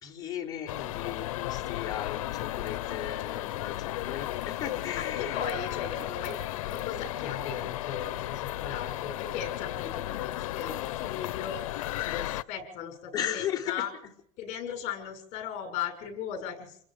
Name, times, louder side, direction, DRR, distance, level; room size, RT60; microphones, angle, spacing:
voice 1, 0.0-5.4 13.1-13.9, left 10 dB, 20° left, -2 dB, 4.2 m, -36 dB
sound 1, 0.7-12.4, left 15 dB, 85° left, 0.9 m, -34 dB
voice 2, 4.9-11.7 12.0-13.9 14.4-16.8, left 8 dB, 40° left, 5 dB, 7.1 m, -37 dB
29.0 x 21.0 x 5.2 m, 0.66 s
supercardioid pair, 155°, 17 cm